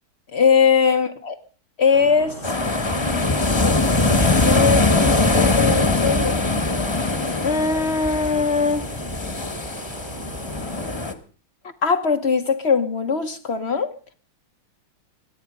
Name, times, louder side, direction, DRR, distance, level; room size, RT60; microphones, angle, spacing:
voice 1, 0.3-1.3 1.8-3.3 3.6-6.4 7.4-8.9 11.8-13.9, left 5 dB, 50° left, 0.8 m, -21 dB
sound 1, 1.9-10.9, right 2 dB, 75° right, 4.4 m, -39 dB
sound 2, 2.4-11.1, left 2 dB, 15° left, 1.0 m, -21 dB
24.5 x 9.1 x 5.1 m
omnidirectional pair, 2.2 m